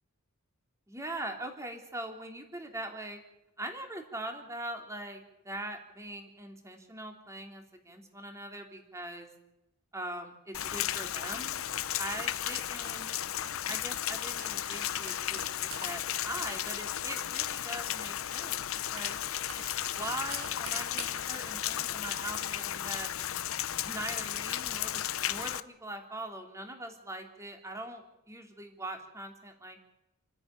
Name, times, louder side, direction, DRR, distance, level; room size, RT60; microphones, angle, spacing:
voice 1, 0.9-3.2 3.6-9.3 9.9-11.5 12.0-13.2 13.7-19.2 19.9-23.1 23.8-29.8, right 1 dB, 15° right, 3 dB, 3.1 m, -41 dB
Rain, 10.5-25.6, left 11 dB, 70° left, 0.7 m, -34 dB
sound 1, 13.0-24.3, right 5 dB, 75° right, 3.9 m, -50 dB
29.0 x 10.5 x 10.0 m, 0.90 s
head